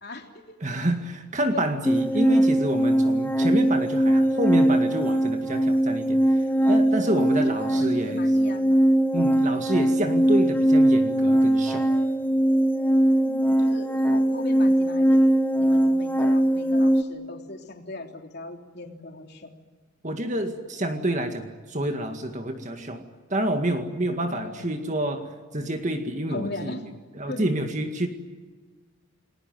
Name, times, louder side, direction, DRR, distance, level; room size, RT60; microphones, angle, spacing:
voice 1, 0.0-0.6 1.5-1.6 6.6-6.9 7.2-8.8 13.2-15.3 15.6-19.5 24.3-25.1 26.3-26.8 27.3-27.5, left 2 dB, 50° left, 3 dB, 3.4 m, -39 dB
voice 2, 0.6-8.3 9.1-11.9 20.0-23.0 23.3-26.8 27.2-28.1, right 1 dB, 35° right, 5 dB, 2.0 m, -28 dB
sound 1, 1.8-17.0, right 1 dB, 10° left, 1.1 m, -21 dB
29.5 x 20.5 x 9.5 m, 1.4 s
head